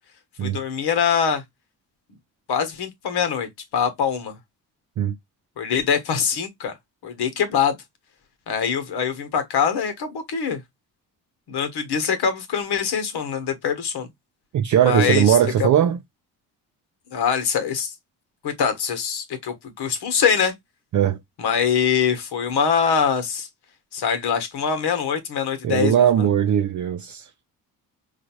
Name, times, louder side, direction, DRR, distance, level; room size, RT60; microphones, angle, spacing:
voice 1, 0.4-1.4 2.5-4.4 5.6-6.7 7.0-7.8 8.5-10.6 11.5-14.1 14.8-15.7 17.1-17.9 18.4-20.5 21.4-23.5 23.9-26.3, left 7 dB, 55° left, 1.2 m, -23 dB
voice 2, 14.5-16.0 20.9-21.2 25.6-27.3, right 10 dB, 40° right, 0.5 m, -19 dB
4.8 x 2.5 x 2.9 m
hypercardioid pair, 45°, 49 cm